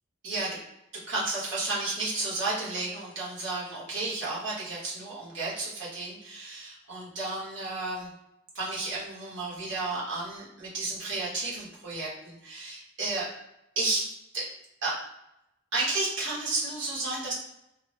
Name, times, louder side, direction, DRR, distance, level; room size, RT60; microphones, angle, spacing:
voice 1, 0.2-0.6 0.9-8.1 8.5-13.3 13.7-14.5 14.8-15.0 15.7-17.3, right 2 dB, 75° right, -7 dB, 1.4 m, -32 dB
3.4 x 2.1 x 3.1 m, 0.85 s
head